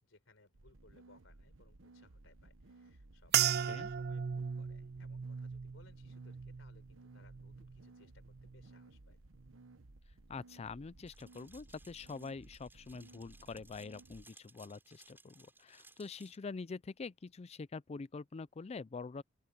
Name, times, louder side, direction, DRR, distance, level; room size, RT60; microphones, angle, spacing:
voice 1, 0.0-9.2, left 2 dB, 70° left, 4.7 m, -66 dB
sound 1, 0.5-14.2, right 2 dB, 80° right, 1.2 m, -59 dB
sound 2, 3.3-7.9 8.2-8.8 9.4-9.7, right 9 dB, 55° right, 0.4 m, -37 dB
voice 2, 3.5-3.9 10.3-19.2, left 4 dB, 30° left, 0.4 m, -45 dB
sound 3, 11.1-16.4, right 3 dB, 10° right, 7.2 m, -62 dB
open air
head